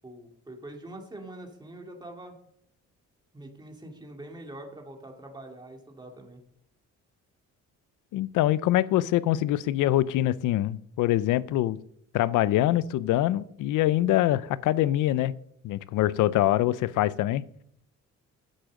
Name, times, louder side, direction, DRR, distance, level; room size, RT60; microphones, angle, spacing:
voice 1, 0.0-2.3 3.3-6.4, right 1 dB, 15° right, 2.4 m, -44 dB
voice 2, 8.1-11.8 12.1-15.3 15.6-17.4, left 14 dB, 85° left, 0.6 m, -24 dB
8.6 x 7.9 x 6.5 m
cardioid pair, 90°, 30 cm